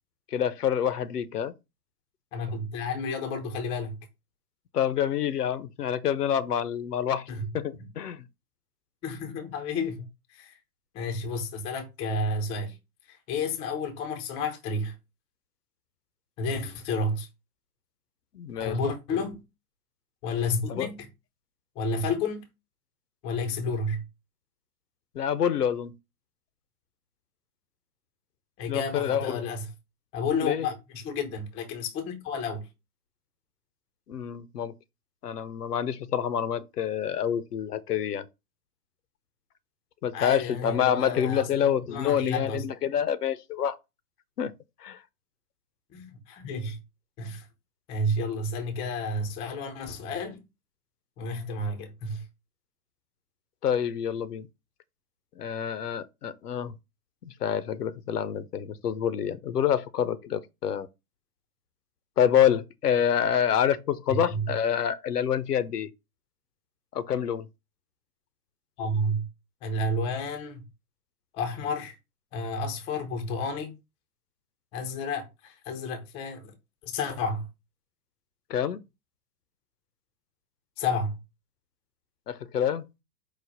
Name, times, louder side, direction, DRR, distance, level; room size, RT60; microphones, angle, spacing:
voice 1, 0.3-1.5 4.7-7.3 7.5-8.3 18.3-18.8 20.7-20.9 25.1-25.9 28.7-29.4 30.4-30.7 34.1-34.7 35.2-38.3 40.0-43.8 44.4-44.5 44.8-45.0 53.6-54.5 55.4-56.7 57.3-60.9 62.2-65.9 66.9-67.5 78.5-78.8 82.3-82.9, left 9 dB, 80° left, 0.7 m, -27 dB
voice 2, 2.3-4.0 7.3-7.5 7.8-7.9 9.0-10.6 10.9-12.8 13.1-14.9 16.4-17.3 18.6-19.4 20.2-21.1 21.8-22.4 23.2-24.0 28.6-29.7 30.1-32.7 40.1-42.6 45.9-46.8 47.2-47.5 47.9-50.4 51.2-52.2 64.1-64.5 68.8-69.3 69.6-70.6 71.3-72.0 72.3-73.8 74.7-76.5 76.8-77.5 80.8-81.2, left 2 dB, 15° left, 0.4 m, -31 dB
4.9 x 2.0 x 3.9 m
figure-of-eight pair, 105°, 46 cm